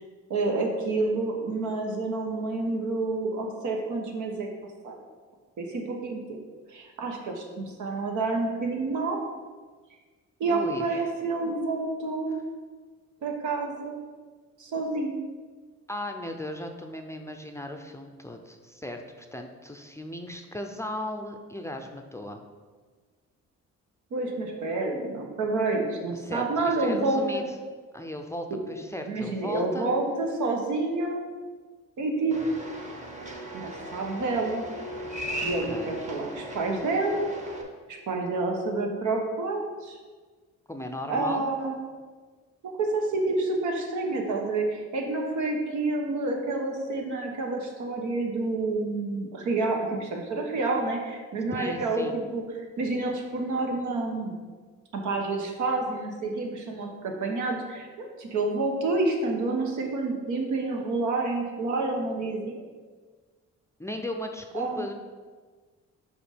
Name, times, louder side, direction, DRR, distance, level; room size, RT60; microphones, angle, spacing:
voice 1, 0.3-4.5 4.8-5.0 5.6-6.2 6.7-9.2 10.4-12.4 13.2-14.0 14.6-15.2 24.1-27.4 28.5-28.6 29.0-31.2 32.0-32.4 33.5-34.6 35.4-37.3 37.9-40.0 41.1-41.8 42.6-52.4 52.8-54.3 54.9-62.6 64.5-64.8, right 3 dB, 75° right, 2 dB, 1.2 m, -28 dB
voice 2, 10.5-11.0 15.9-22.4 26.1-27.4 27.9-29.9 35.6-35.9 40.7-41.5 51.5-52.2 63.8-64.9, left 1 dB, 10° left, 4 dB, 0.5 m, -36 dB
sound 1, 32.3-37.6, right 1 dB, 25° right, 1.1 m, -37 dB
5.2 x 5.0 x 5.0 m, 1.4 s
cardioid pair, 90°, 30 cm